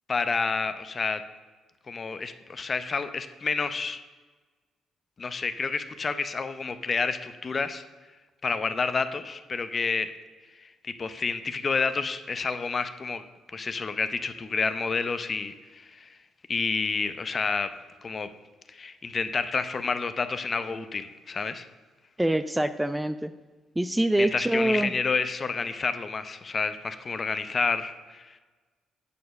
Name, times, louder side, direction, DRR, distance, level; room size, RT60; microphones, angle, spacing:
voice 1, 0.1-1.2 1.9-4.0 5.2-7.8 8.4-10.1 10.6-13.2 13.5-16.2 16.5-17.7 18.0-18.3 18.7-21.7 24.2-28.4, left 4 dB, 35° left, 11 dB, 0.6 m, -29 dB
voice 2, 22.2-23.3 23.8-24.9, right 1 dB, 10° right, 12 dB, 0.3 m, -25 dB
8.4 x 4.7 x 6.3 m, 1.3 s
cardioid pair, 90°, 0 cm